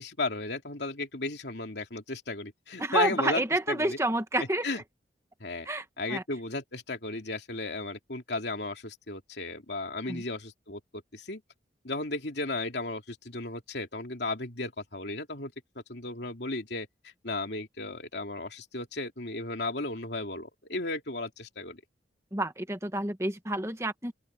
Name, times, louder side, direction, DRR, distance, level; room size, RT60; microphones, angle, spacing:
voice 1, 0.0-3.4 3.7-4.0 4.6-4.8 5.4-5.7 6.0-10.8 11.1-11.4 11.8-15.5 15.9-16.9 17.2-21.8, left 2 dB, 70° left, 3.0 m, -34 dB
voice 2, 2.8-4.7 5.6-6.2 10.1-10.2 22.3-24.1, right 2 dB, 15° right, 1.4 m, -29 dB
open air
head